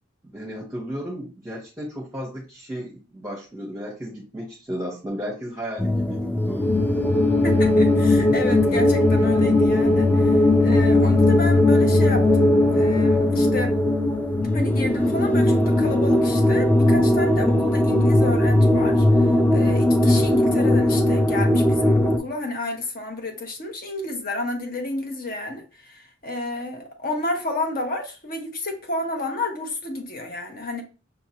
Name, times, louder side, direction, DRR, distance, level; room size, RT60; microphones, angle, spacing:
voice 1, 0.3-6.8, equal, 15° right, 0.8 m, -34 dB
sound 1, 5.8-22.2, left 1 dB, 10° left, 0.4 m, -18 dB
voice 2, 7.4-13.7 14.5-30.8, left 2 dB, 45° left, 0.9 m, -31 dB
5.6 x 2.8 x 2.7 m
head